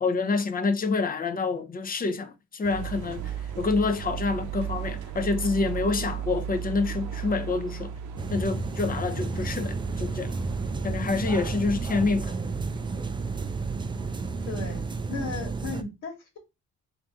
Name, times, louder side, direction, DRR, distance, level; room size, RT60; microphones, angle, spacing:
voice 1, 0.0-7.9 8.3-10.3 10.8-12.4, left 4 dB, 30° left, 0.7 m, -27 dB
sound 1, 2.6-15.3, right 9 dB, 85° right, 0.7 m, -37 dB
sound 2, 8.2-15.8, right 4 dB, 15° right, 0.4 m, -31 dB
voice 2, 14.5-16.4, left 4 dB, 70° left, 1.6 m, -36 dB
3.5 x 2.8 x 3.6 m
cardioid pair, 90°, 30 cm